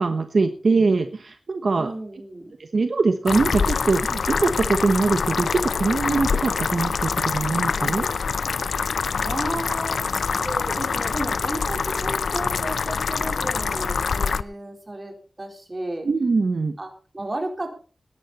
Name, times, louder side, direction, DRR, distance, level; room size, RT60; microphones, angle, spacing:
voice 1, 0.0-1.9 2.7-8.1 16.0-16.8, right 3 dB, 60° right, 7 dB, 1.1 m, -22 dB
voice 2, 1.8-2.5 9.2-16.1 16.8-16.9 17.1-17.7, right 1 dB, 25° right, 3 dB, 4.1 m, -33 dB
sound 1, 3.3-14.4, left 5 dB, 90° left, 0.6 m, -25 dB
19.0 x 10.5 x 4.2 m, 0.37 s
wide cardioid pair, 120°, 0 cm